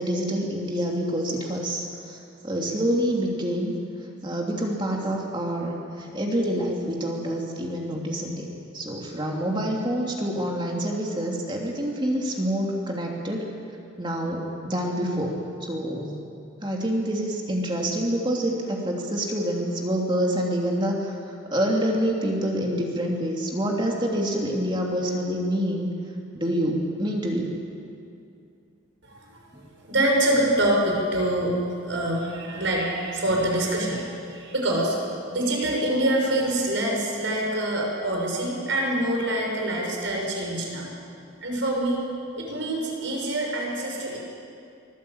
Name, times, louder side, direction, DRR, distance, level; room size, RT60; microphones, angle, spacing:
voice 1, 0.0-2.2 2.4-3.8 4.2-8.5 8.7-13.4 14.0-15.3 15.6-16.2 16.6-21.2 21.5-25.9 26.3-27.5, equal, 25° right, -1 dB, 2.8 m, -27 dB
voice 2, 29.1-29.4 29.8-35.0 35.3-40.9 41.4-42.0 42.4-44.2, right 1 dB, 65° right, -1 dB, 6.5 m, -25 dB
24.0 x 19.0 x 8.7 m, 2.5 s
head